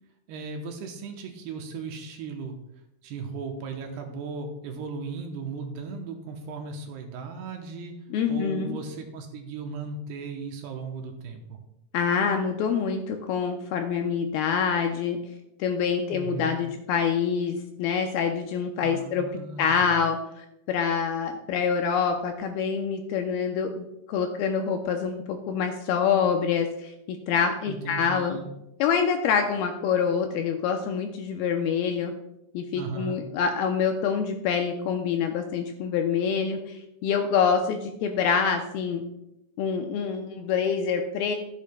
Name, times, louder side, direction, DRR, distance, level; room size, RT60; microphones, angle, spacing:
voice 1, 0.3-2.6 3.0-7.9 8.3-11.6 16.1-16.6 18.8-19.9 27.7-28.5 32.7-33.2, right 4 dB, 75° right, 3 dB, 2.7 m, -36 dB
voice 2, 8.1-8.8 11.9-15.2 15.6-19.2 19.6-28.4 28.8-32.1 32.5-39.0 39.6-41.4, left 6 dB, 85° left, 4 dB, 2.2 m, -26 dB
13.5 x 8.3 x 2.2 m, 0.84 s
omnidirectional pair, 4.9 m